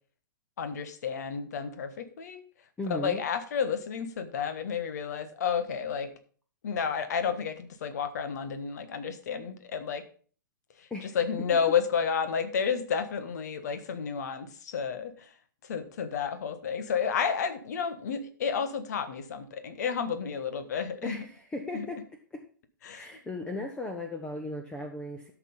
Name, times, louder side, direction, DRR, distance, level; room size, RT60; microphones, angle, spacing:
voice 1, 0.6-2.4 2.9-6.1 6.6-10.0 10.8-15.3 15.6-21.2 21.7-21.9 22.8-23.1, left 6 dB, 55° left, 10 dB, 1.4 m, -31 dB
voice 2, 2.8-3.2 10.9-11.2 21.0-22.0 22.3-22.4 22.9-25.3, left 2 dB, 10° left, 4 dB, 1.0 m, -36 dB
12.5 x 6.1 x 5.4 m, 0.43 s
figure-of-eight pair, 110°, 11 cm